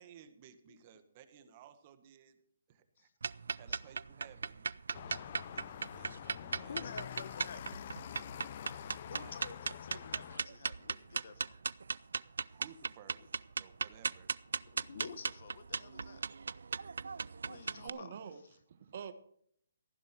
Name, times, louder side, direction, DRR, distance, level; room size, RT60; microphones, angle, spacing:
voice 1, 0.0-3.1 3.6-6.9 8.0-8.5 9.1-9.4 12.5-14.3, right 9 dB, 35° right, 10 dB, 1.6 m, -58 dB
sound 1, 3.2-17.9, right 5 dB, 80° right, 0.4 m, -38 dB
sound 2, 4.9-10.4, left 10 dB, 45° left, 0.4 m, -46 dB
voice 2, 6.6-7.6 9.0-11.5 14.6-16.2 17.5-18.1, left 5 dB, 60° left, 11 dB, 1.6 m, -49 dB
voice 3, 17.8-19.1, right 7 dB, 50° right, 12 dB, 1.2 m, -46 dB
15.0 x 10.5 x 4.5 m, 0.65 s
hypercardioid pair, 155°, 0 cm